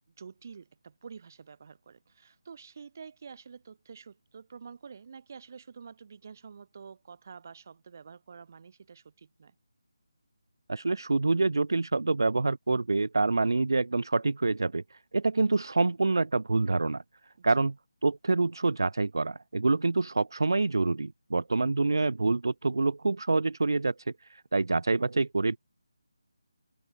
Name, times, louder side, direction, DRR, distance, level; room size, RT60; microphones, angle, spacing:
voice 1, 0.2-9.5, right 6 dB, 40° right, 6.9 m, -48 dB
voice 2, 10.7-17.0 17.4-17.8 18.0-25.6, right 3 dB, 65° right, 0.4 m, -26 dB
figure-of-eight pair, 155°, 2 cm